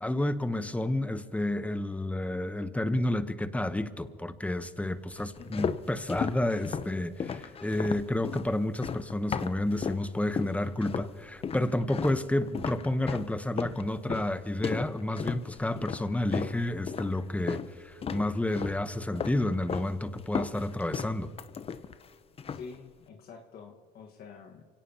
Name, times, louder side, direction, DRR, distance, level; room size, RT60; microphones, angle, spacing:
voice 1, 0.0-21.3, left 1 dB, 10° left, 12 dB, 0.9 m, -30 dB
sound 1, 5.2-10.1 10.4-11.1 11.4-17.7 18.0-18.8 19.2-19.9 20.2-22.1 22.4-22.7, left 6 dB, 35° left, 0.7 m, -35 dB
voice 2, 22.5-24.6, left 5 dB, 60° left, 2 dB, 1.6 m, -47 dB
25.0 x 17.5 x 2.9 m, 2.2 s
cardioid pair, 95°, 18 cm